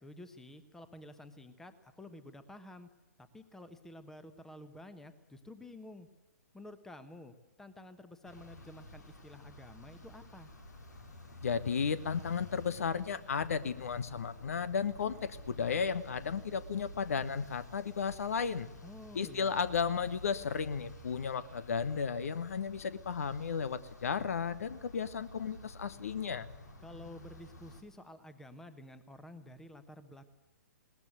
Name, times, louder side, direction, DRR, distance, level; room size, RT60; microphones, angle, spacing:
voice 1, 0.0-2.9 3.3-6.1 6.5-10.5 18.8-19.6 26.8-30.3, left 1 dB, 5° left, 12 dB, 1.2 m, -51 dB
sound 1, 8.2-27.8, left 1 dB, 70° left, 4.3 m, -51 dB
voice 2, 11.4-18.7 19.1-26.5, left 6 dB, 55° left, 16 dB, 1.1 m, -34 dB
20.5 x 19.0 x 7.9 m, 1.1 s
figure-of-eight pair, 120°, 10 cm